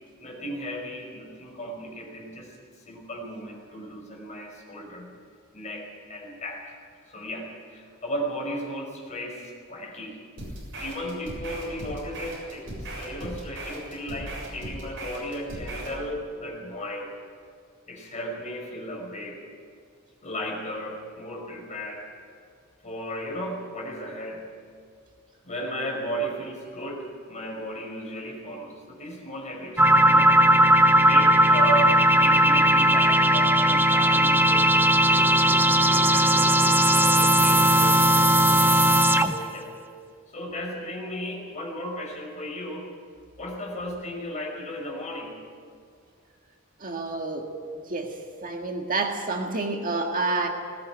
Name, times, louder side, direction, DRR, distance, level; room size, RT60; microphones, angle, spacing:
voice 1, 0.2-2.6 2.9-5.1 5.5-6.8 7.1-10.3 10.8-17.1 17.9-19.4 20.2-22.1 22.8-24.7 25.4-30.5 31.0-34.7 35.1-38.8 39.2-39.7 40.3-42.9 43.4-45.5, equal, 35° left, -1 dB, 5.4 m, -35 dB
sound 1, 10.4-16.0, right 1 dB, 60° right, 7.3 m, -38 dB
sound 2, 29.8-39.5, right 1 dB, 10° right, 0.8 m, -18 dB
voice 2, 46.8-47.5 47.9-50.5, right 3 dB, 40° right, 3 dB, 1.8 m, -29 dB
19.5 x 18.0 x 9.1 m, 2.3 s
head